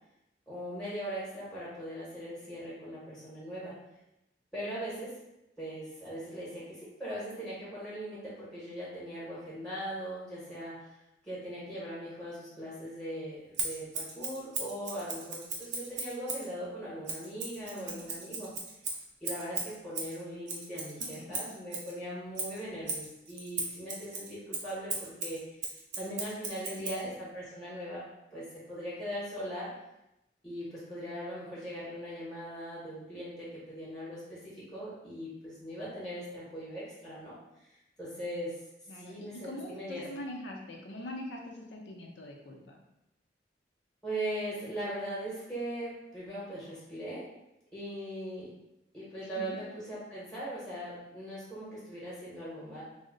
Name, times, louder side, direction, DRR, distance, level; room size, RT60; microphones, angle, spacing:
voice 1, 0.5-3.7 4.5-5.2 5.6-10.9 11.2-18.5 19.2-25.4 26.0-28.0 28.3-29.7 30.4-37.7 38.0-38.6 38.9-40.0 44.0-47.2 47.7-48.5 48.9-52.8, equal, 5° left, -8 dB, 0.8 m, -40 dB
Scissors, 13.5-16.5 17.0-21.9 22.3-27.0, right 4 dB, 85° right, 0.7 m, -37 dB
voice 2, 17.6-18.0 21.2-21.4 26.7-27.1 38.9-42.8 49.2-49.6, left 1 dB, 85° left, 1 dB, 0.6 m, -43 dB
2.7 x 2.1 x 3.8 m, 0.90 s
head